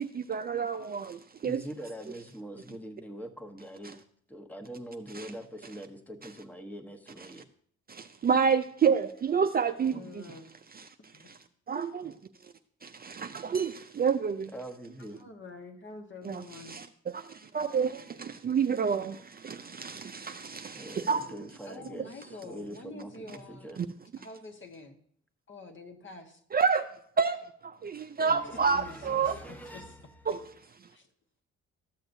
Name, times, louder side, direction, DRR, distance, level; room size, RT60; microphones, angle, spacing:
voice 1, 0.0-1.6 5.1-5.3 7.9-10.2 10.8-10.9 11.3-11.4 11.7-12.1 12.8-14.5 16.2-16.9 17.1-21.3 23.8-23.9 26.5-26.9 27.2-27.4 27.6-29.4 30.3-30.4, right 6 dB, 30° right, 0.4 m, -29 dB
voice 2, 1.4-4.0 4.3-7.4 9.9-10.0 14.5-15.2 20.7-23.8 28.2-30.0, equal, 5° left, 1.1 m, -43 dB
voice 3, 9.9-10.5 11.0-11.3 15.2-16.8 21.6-23.8 24.2-25.0 25.5-26.4 28.5-30.0 30.9-31.1, left 3 dB, 40° left, 1.4 m, -47 dB
13.5 x 6.5 x 2.7 m
cardioid pair, 75°, 30 cm